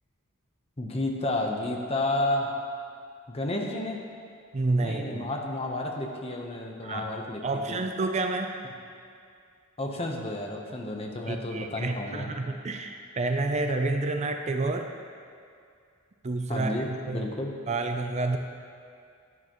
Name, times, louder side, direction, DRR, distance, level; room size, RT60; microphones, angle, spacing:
voice 1, 0.8-2.5 3.3-4.1 4.8-7.8 9.8-12.3 16.5-17.5, left 2 dB, 30° left, 1 dB, 0.9 m, -31 dB
voice 2, 4.5-5.3 6.8-7.1 7.4-8.5 11.3-14.9 16.2-17.2 17.7-18.4, right 2 dB, 35° right, 5 dB, 0.5 m, -29 dB
11.0 x 10.5 x 3.0 m, 2.3 s
head